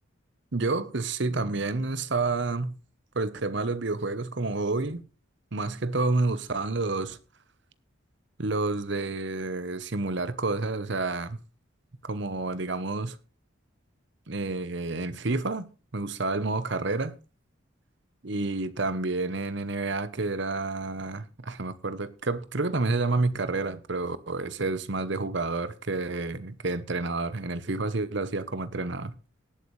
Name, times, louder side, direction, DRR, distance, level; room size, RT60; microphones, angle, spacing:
voice 1, 0.5-2.8 3.1-5.0 5.5-7.2 8.4-11.4 12.0-13.2 14.3-15.7 15.9-17.1 18.2-29.1, right 3 dB, 55° right, 0.9 m, -29 dB
18.5 x 8.2 x 3.2 m
head